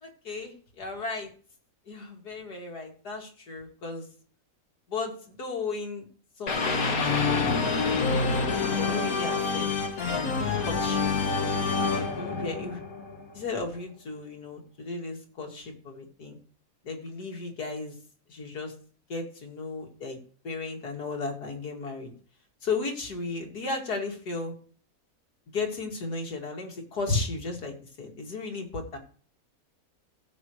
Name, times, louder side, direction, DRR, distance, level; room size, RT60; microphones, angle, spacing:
voice 1, 0.0-1.3 1.9-4.1 4.9-6.1 6.4-9.7 10.1-11.1 11.9-12.8 13.3-16.4 16.8-18.0 18.3-18.7 19.1-22.1 22.6-24.5 25.5-29.0, left 3 dB, 85° left, 2 dB, 2.9 m, -35 dB
sound 1, 6.5-13.4, left 4 dB, 65° left, 2.0 m, -27 dB
16.0 x 7.6 x 3.2 m, 0.41 s
omnidirectional pair, 1.7 m